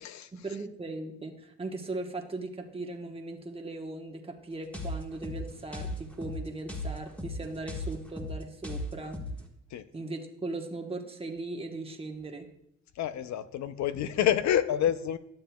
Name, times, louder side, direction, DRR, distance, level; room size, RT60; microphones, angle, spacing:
voice 1, 0.3-9.2 9.9-12.5, right 2 dB, 20° right, 2 dB, 1.1 m, -38 dB
sound 1, 4.7-9.5, left 1 dB, 5° left, 1.5 m, -37 dB
voice 2, 13.0-15.2, left 10 dB, 70° left, 13 dB, 0.6 m, -28 dB
12.0 x 7.5 x 2.3 m, 0.78 s
cardioid pair, 90°, 30 cm